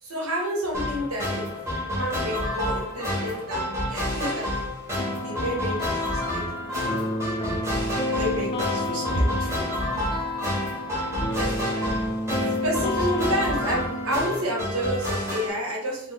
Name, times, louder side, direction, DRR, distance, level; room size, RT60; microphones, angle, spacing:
voice 1, 0.0-1.4 1.8-4.7 5.0-6.4 6.8-7.0 8.2-9.7 11.3-11.5 12.6-16.1, equal, 80° right, -2 dB, 1.1 m, -29 dB
sound 1, 0.7-15.5, left 1 dB, 15° right, 1.0 m, -29 dB
sound 2, 5.0-14.2, left 1 dB, 25° left, 0.4 m, -31 dB
3.9 x 2.0 x 3.5 m, 0.77 s
head